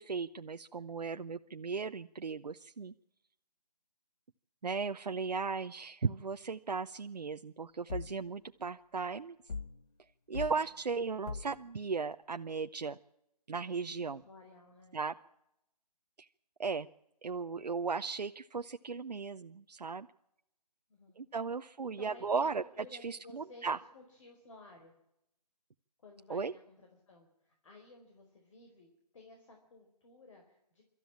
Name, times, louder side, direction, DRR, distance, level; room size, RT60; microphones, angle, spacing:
voice 1, 0.0-2.9 4.6-9.4 10.3-13.0 13.5-14.2 14.9-15.1 16.6-16.9 17.2-20.1 21.2-22.6 23.0-23.8 26.3-26.5, right 5 dB, 80° right, 7 dB, 0.8 m, -36 dB
sound 1, 7.9-8.2 9.5-9.8 10.3-10.6 11.3-11.6, left 4 dB, 70° left, 1.0 m, -40 dB
voice 2, 14.1-15.0 20.9-21.2 21.8-24.9 26.0-28.9 29.1-30.8, left 2 dB, 50° left, 2 dB, 4.6 m, -56 dB
26.0 x 13.5 x 8.8 m, 0.85 s
figure-of-eight pair, 155°, 20 cm